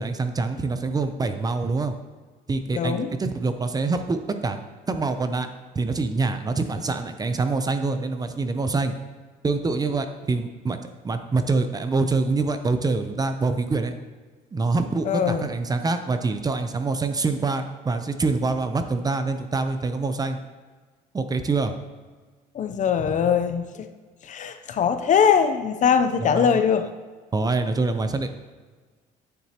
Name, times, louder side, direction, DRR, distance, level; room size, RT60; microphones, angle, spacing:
voice 1, 0.0-1.9 2.5-4.6 4.9-5.5 5.7-8.9 9.4-13.9 14.5-20.4 21.1-21.8 26.2-26.6 27.3-28.3, right 3 dB, 20° right, 8 dB, 0.6 m, -25 dB
voice 2, 2.7-3.1 15.0-15.5 22.5-23.9 24.2-26.8, left 7 dB, 45° left, 9 dB, 0.6 m, -21 dB
9.4 x 7.2 x 2.9 m, 1.4 s
cardioid pair, 110°, 17 cm